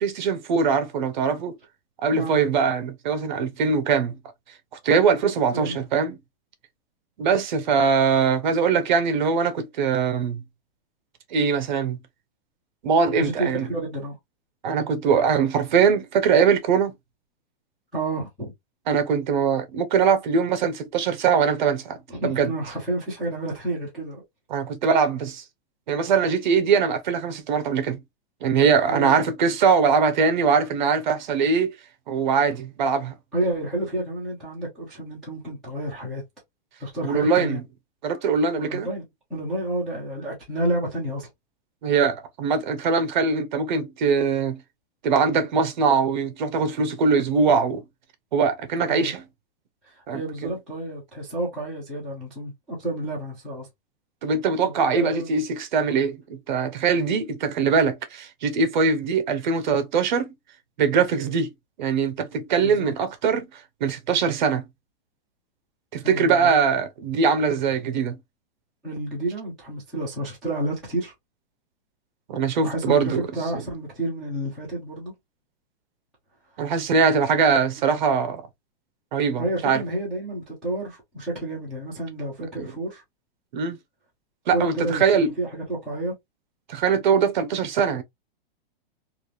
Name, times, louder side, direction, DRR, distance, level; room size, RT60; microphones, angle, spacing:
voice 1, 0.0-1.6 2.0-4.1 4.8-6.2 7.2-10.4 11.3-12.0 12.8-13.7 14.6-16.9 18.9-22.0 22.2-22.5 24.5-25.4 25.9-28.0 28.4-31.7 32.1-33.1 37.0-37.6 38.0-38.9 41.8-44.6 45.0-47.8 48.3-49.2 50.1-50.2 54.2-60.3 60.8-61.5 61.8-63.5 63.8-64.6 65.9-68.2 72.3-73.2 73.5-73.6 76.6-78.4 79.1-79.8 82.6-82.7 83.5-83.8 84.5-85.3 86.7-88.0, right 5 dB, 50° right, 0.7 m, -22 dB
voice 2, 5.5-5.8 13.2-14.2 17.9-18.5 22.1-24.2 28.9-29.2 33.3-36.2 36.8-37.6 38.6-39.0 39.3-41.3 48.8-49.1 49.8-53.7 54.6-55.4 61.1-61.3 62.6-62.9 66.0-66.5 68.8-71.1 72.6-75.1 79.4-83.0 84.5-85.1 85.4-86.1, right 1 dB, ahead, 0.3 m, -30 dB
3.2 x 2.4 x 2.5 m
supercardioid pair, 170°, 30 cm